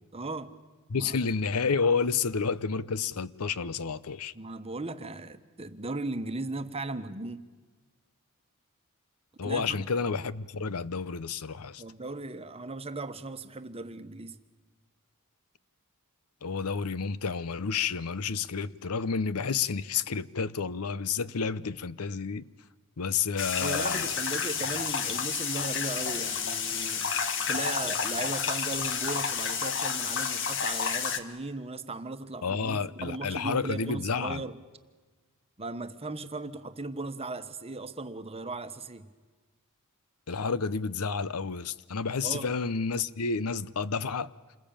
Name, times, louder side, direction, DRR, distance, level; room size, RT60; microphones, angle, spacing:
voice 1, 0.1-0.5 0.9-1.2 4.3-7.4 9.4-9.9 11.8-14.3 23.6-27.1 27.5-34.6 35.6-39.1 42.2-42.5, right 2 dB, 25° right, 1.2 m, -37 dB
voice 2, 0.9-4.3 9.4-11.8 16.4-22.4 23.0-24.1 32.4-34.4 40.3-44.3, left 5 dB, 85° left, 0.8 m, -30 dB
sound 1, 23.4-31.2, left 6 dB, 60° left, 1.6 m, -30 dB
27.5 x 21.0 x 8.8 m
head